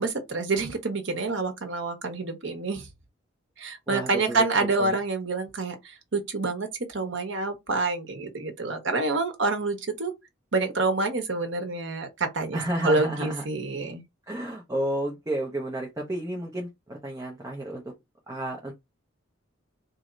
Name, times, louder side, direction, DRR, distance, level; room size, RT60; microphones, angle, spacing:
voice 1, 0.0-2.9 3.6-10.1 10.5-14.0, right 3 dB, 65° right, 1.0 m, -27 dB
voice 2, 3.9-4.4 4.8-4.9 12.5-13.4 14.3-17.9 18.3-18.7, right 1 dB, 15° right, 0.9 m, -31 dB
3.1 x 2.8 x 3.8 m
head